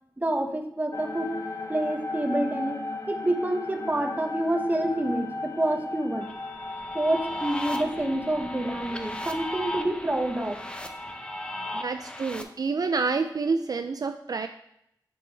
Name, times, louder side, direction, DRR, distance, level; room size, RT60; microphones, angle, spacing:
voice 1, 0.2-1.4 1.7-6.3 6.9-10.6, right 1 dB, 20° right, 5 dB, 0.9 m, -28 dB
sound 1, 0.9-12.3 12.7-12.8 13.0-13.8, left 3 dB, 45° left, 0.9 m, -38 dB
sound 2, 6.2-12.4, left 1 dB, 15° left, 0.7 m, -35 dB
voice 2, 11.7-14.5, right 4 dB, 55° right, 7 dB, 0.4 m, -28 dB
7.9 x 5.0 x 3.3 m, 0.76 s
wide cardioid pair, 60°, 8 cm